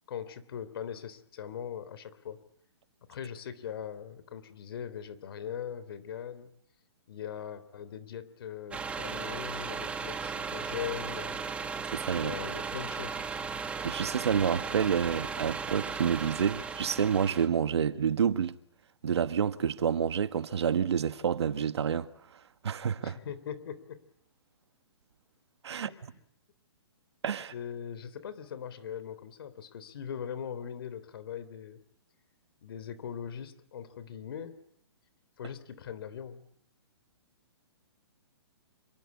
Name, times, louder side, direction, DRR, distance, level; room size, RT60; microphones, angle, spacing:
voice 1, 0.1-2.4 3.1-6.5 7.1-11.4 12.1-13.2 23.0-24.0 25.7-26.0 27.5-31.8 32.6-34.6 35.4-36.5, left 8 dB, 60° left, 3.5 m, -40 dB
sound 1, 8.7-17.5, right 5 dB, 10° right, 2.0 m, -36 dB
voice 2, 11.9-12.3 13.8-18.6 19.0-22.1 22.6-23.2 25.6-26.1 27.2-27.5, right 7 dB, 80° right, 1.6 m, -28 dB
27.5 x 25.0 x 8.5 m
hypercardioid pair, 155°, 14 cm